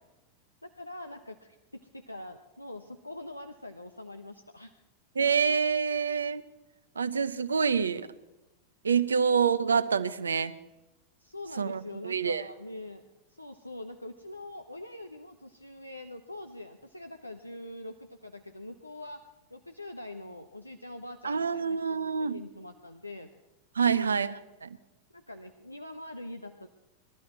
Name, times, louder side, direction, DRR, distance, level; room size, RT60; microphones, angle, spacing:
voice 1, 0.6-4.7 11.2-13.0 13.3-19.2 19.5-23.3 23.8-24.2 25.1-26.7, left 1 dB, 85° left, 6 dB, 0.8 m, -43 dB
voice 2, 5.2-6.4 7.0-8.1 8.8-10.5 11.6-12.4 21.2-22.4 23.8-24.3 24.6-24.8, right 6 dB, 75° right, 13 dB, 0.7 m, -27 dB
20.5 x 13.0 x 4.3 m, 1.0 s
figure-of-eight pair, 90°, 0 cm